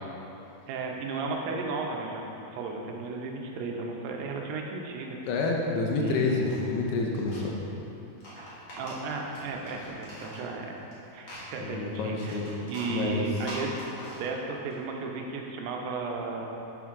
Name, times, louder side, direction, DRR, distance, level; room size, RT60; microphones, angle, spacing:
voice 1, 0.7-5.2 6.0-6.5 8.4-10.8 11.1-13.9 14.2-16.5, right 3 dB, 85° right, 1 dB, 2.8 m, -35 dB
voice 2, 5.3-7.6 11.6-12.5 12.9-13.2, left 3 dB, 80° left, 0 dB, 2.8 m, -28 dB
sound 1, 6.1-7.5 8.1-10.9 11.2-14.7, left 1 dB, 50° left, 1.6 m, -44 dB
7.9 x 6.0 x 3.6 m, 2.9 s
omnidirectional pair, 4.6 m